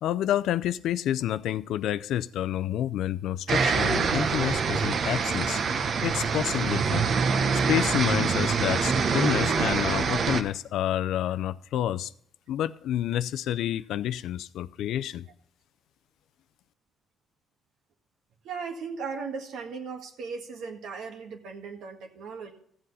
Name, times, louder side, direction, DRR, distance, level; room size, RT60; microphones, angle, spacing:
voice 1, 0.0-5.6 6.0-7.0 7.5-12.1 12.5-15.2, left 11 dB, 80° left, 0.4 m, -29 dB
sound 1, 3.5-10.4, right 5 dB, 55° right, 0.9 m, -25 dB
voice 2, 18.4-22.5, right 5 dB, 80° right, 1.7 m, -37 dB
15.0 x 7.7 x 4.0 m
cardioid pair, 90°, 0 cm